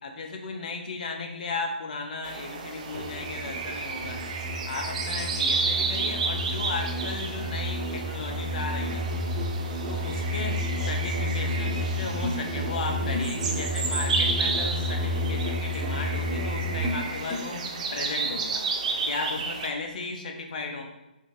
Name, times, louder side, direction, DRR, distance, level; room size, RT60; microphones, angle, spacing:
voice 1, 0.0-4.2 4.7-9.0 9.9-18.6 19.0-20.9, left 3 dB, 55° left, 3 dB, 0.6 m, -35 dB
sound 1, 2.2-19.7, right 4 dB, 45° right, 0.4 m, -32 dB
Musical instrument, 2.9-17.5, left 1 dB, 10° left, 0.8 m, -31 dB
4.5 x 2.7 x 2.5 m, 0.97 s
figure-of-eight pair, 140°, 5 cm